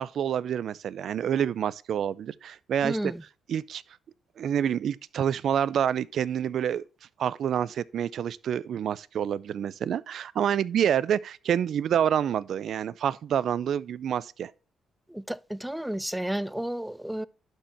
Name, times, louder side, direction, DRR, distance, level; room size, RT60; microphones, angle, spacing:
voice 1, 0.0-3.0 3.5-3.8 4.4-6.8 7.2-14.5, right 9 dB, 65° right, 0.4 m, -27 dB
voice 2, 2.8-3.2 15.1-17.3, right 1 dB, 5° right, 0.4 m, -32 dB
11.5 x 4.6 x 4.2 m
cardioid pair, 90°, 0 cm